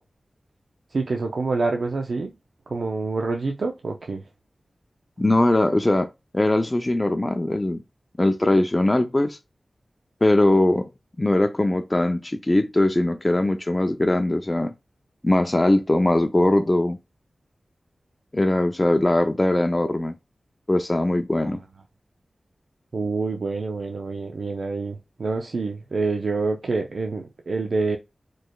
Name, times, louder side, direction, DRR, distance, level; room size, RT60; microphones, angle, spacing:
voice 1, 0.9-2.3 2.7-4.2 21.4-21.5 22.9-28.0, right 3 dB, 75° right, 0.4 m, -27 dB
voice 2, 5.2-6.1 6.3-7.8 8.2-9.4 10.2-10.9 11.2-14.7 15.2-17.0 18.3-20.1 20.7-21.6, left 1 dB, 25° left, 0.5 m, -20 dB
4.2 x 3.2 x 2.2 m
wide cardioid pair, 60°, 0 cm